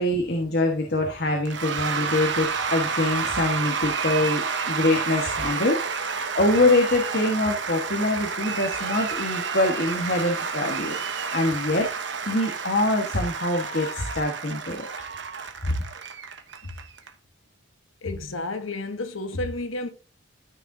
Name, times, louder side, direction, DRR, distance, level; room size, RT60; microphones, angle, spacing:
voice 1, 0.0-10.9 11.3-11.9 12.3-14.8, left 2 dB, 55° left, 1.4 m, -24 dB
Cheering / Applause / Crowd, 1.5-17.1, right 5 dB, 60° right, 1.0 m, -30 dB
voice 2, 18.0-19.9, left 2 dB, 85° left, 1.2 m, -31 dB
13.5 x 6.3 x 2.7 m
head